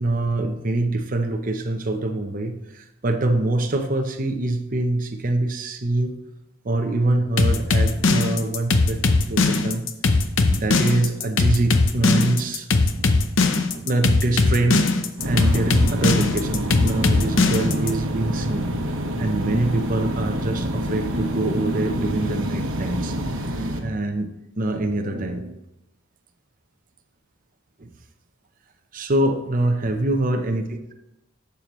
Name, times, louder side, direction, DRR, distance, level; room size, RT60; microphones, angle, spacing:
voice 1, 0.0-6.1 6.6-9.0 9.3-9.9 10.5-13.1 13.7-18.7 19.2-23.1 23.8-24.3 24.6-25.5 27.8-27.9 28.9-30.9, right 2 dB, 40° right, 5 dB, 0.7 m, -24 dB
sound 1, 7.4-17.9, left 3 dB, 65° left, 0.7 m, -19 dB
sound 2, 15.2-23.8, right 1 dB, 70° right, 1.1 m, -27 dB
11.5 x 6.9 x 3.1 m, 0.92 s
head